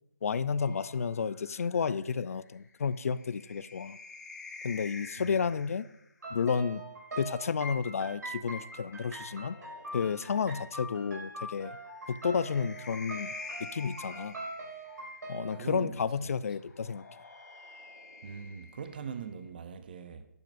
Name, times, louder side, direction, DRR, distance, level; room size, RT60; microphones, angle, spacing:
voice 1, 0.2-4.0 4.6-5.9 6.3-6.8 7.2-9.6 9.9-11.8 12.1-13.3 13.6-14.4 15.3-17.0, left 6 dB, 50° left, 0.4 m, -31 dB
sound 1, 0.6-6.1 7.5-10.5 11.8-15.3 16.6-19.5, left 3 dB, 70° left, 2.7 m, -49 dB
sound 2, 6.2-15.6, right 2 dB, 75° right, 5.1 m, -43 dB
voice 2, 15.5-16.3 18.2-20.3, right 6 dB, 30° right, 0.6 m, -41 dB
15.5 x 10.5 x 2.5 m
hypercardioid pair, 170°, 10 cm